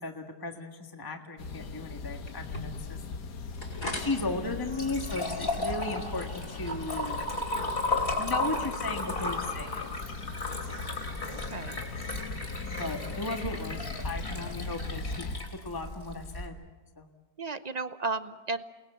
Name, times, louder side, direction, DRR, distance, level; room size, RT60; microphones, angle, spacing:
voice 1, 0.0-3.0 3.9-7.2 8.2-9.9 11.1-11.2 12.7-15.2 15.6-16.5 17.0-17.1, left 2 dB, 15° left, 3 dB, 1.6 m, -36 dB
sound 1, 1.4-15.4, left 4 dB, 75° left, 1.9 m, -40 dB
sound 2, 2.3-10.2, left 1 dB, 55° left, 6.6 m, -44 dB
Liquid, 4.4-16.5, left 2 dB, 35° left, 3.6 m, -34 dB
voice 2, 11.3-11.8 17.4-18.6, right 3 dB, 40° right, 11 dB, 0.6 m, -34 dB
29.5 x 20.5 x 8.0 m, 1.3 s
omnidirectional pair, 1.8 m